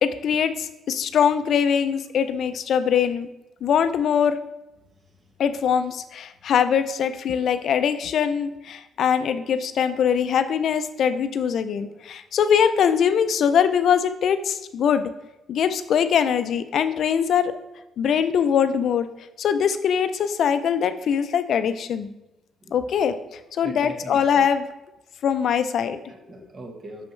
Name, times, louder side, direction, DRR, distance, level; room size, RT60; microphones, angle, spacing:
voice 1, 0.0-3.3 3.6-4.4 5.4-15.1 15.5-17.5 18.0-19.1 19.4-22.1 22.7-24.7 25.2-26.0, left 7 dB, 65° left, 11 dB, 0.4 m, -22 dB
voice 2, 23.6-24.5 26.1-27.1, right 2 dB, 40° right, 4 dB, 1.1 m, -40 dB
6.3 x 5.3 x 3.1 m, 0.95 s
cardioid pair, 90°, 0 cm